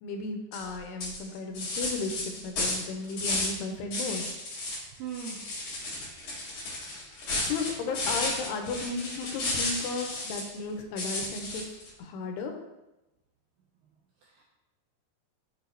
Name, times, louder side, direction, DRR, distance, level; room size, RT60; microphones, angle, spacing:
voice 1, 0.0-4.2 7.4-11.7 12.0-12.5, left 4 dB, 90° left, 4 dB, 2.8 m, -34 dB
sound 1, 0.5-0.7 1.0-3.6 3.9-4.8 5.1-10.6 11.0-11.9, left 2 dB, 55° left, 2.7 m, -33 dB
voice 2, 4.9-5.4 14.2-14.4, right 8 dB, 90° right, -2 dB, 1.9 m, -39 dB
6.5 x 6.2 x 2.8 m, 0.97 s
omnidirectional pair, 4.7 m